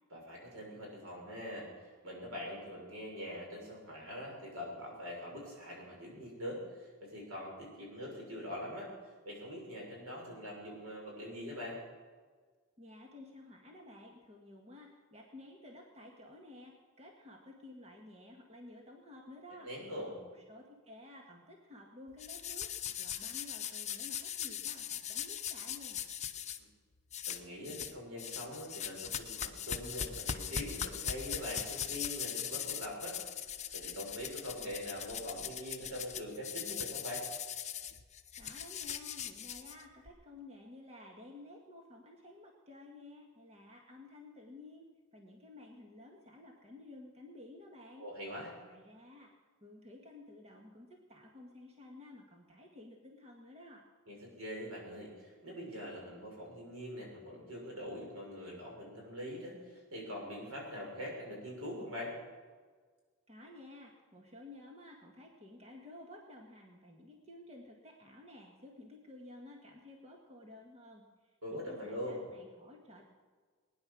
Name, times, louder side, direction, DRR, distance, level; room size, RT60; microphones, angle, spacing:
voice 1, 0.1-1.7 2.0-8.9 9.2-11.8 19.6-20.1 26.6-26.7 27.3-33.2 33.7-37.3 48.0-48.5 54.1-62.2 71.4-72.2, equal, 85° right, -2 dB, 6.4 m, -43 dB
voice 2, 12.8-19.7 20.2-22.7 23.0-26.0 38.4-44.9 45.1-48.0 48.6-49.3 49.6-53.8 63.3-73.1, left 2 dB, 30° right, 0 dB, 1.9 m, -53 dB
sound 1, 22.2-26.6 27.1-27.9 28.2-40.1, left 9 dB, 35° left, 0.9 m, -40 dB
20.0 x 10.5 x 6.3 m, 1.5 s
head